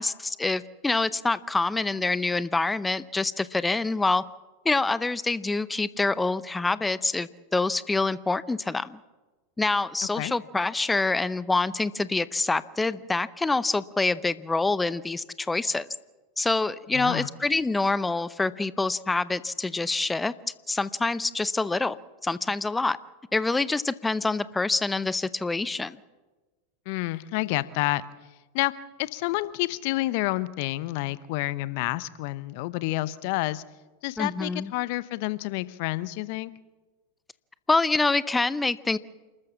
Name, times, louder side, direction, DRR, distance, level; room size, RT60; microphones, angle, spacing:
voice 1, 0.0-4.2 4.6-9.0 9.6-15.9 16.4-20.3 20.7-21.9 22.2-23.0 23.3-26.0 34.2-34.7 37.7-39.0, left 3 dB, 10° left, 17 dB, 0.7 m, -26 dB
voice 2, 16.9-17.3 26.9-28.0 28.5-28.7 29.0-33.6 34.0-36.5, left 19 dB, 55° left, 17 dB, 0.8 m, -29 dB
28.5 x 13.5 x 7.4 m, 1.2 s
hypercardioid pair, 90°, 0 cm